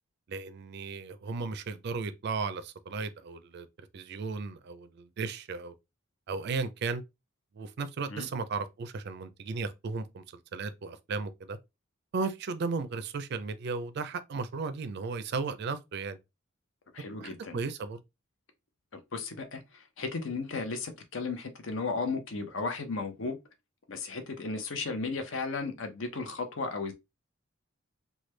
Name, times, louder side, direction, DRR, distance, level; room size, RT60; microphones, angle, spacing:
voice 1, 0.3-5.7 6.3-7.0 7.5-10.2 10.5-11.6 12.1-16.2 17.2-18.0, right 4 dB, 55° right, 0.4 m, -35 dB
voice 2, 16.9-17.6 19.1-23.4 23.9-26.9, left 4 dB, 65° left, 0.7 m, -35 dB
3.2 x 2.2 x 3.2 m
head